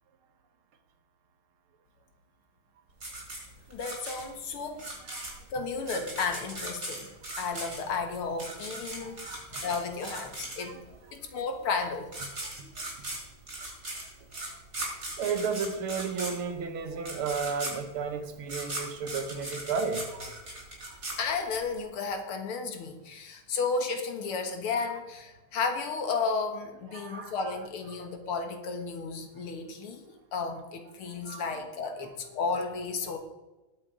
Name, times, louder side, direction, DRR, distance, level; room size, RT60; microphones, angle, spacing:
sound 1, 3.0-10.9 11.8-11.9 12.1-21.8, right 2 dB, 40° right, 4.9 m, -39 dB
voice 1, 3.7-4.8 5.5-7.1 7.4-9.3 9.5-10.8 11.1-12.1 21.2-30.0 30.3-33.2, left 4 dB, 80° left, 6 dB, 2.3 m, -33 dB
voice 2, 9.0-9.4 12.6-12.7 15.2-20.4 26.9-27.5 31.2-31.6, right 5 dB, 80° right, 7 dB, 2.0 m, -33 dB
19.5 x 7.2 x 5.0 m, 1.1 s
omnidirectional pair, 2.4 m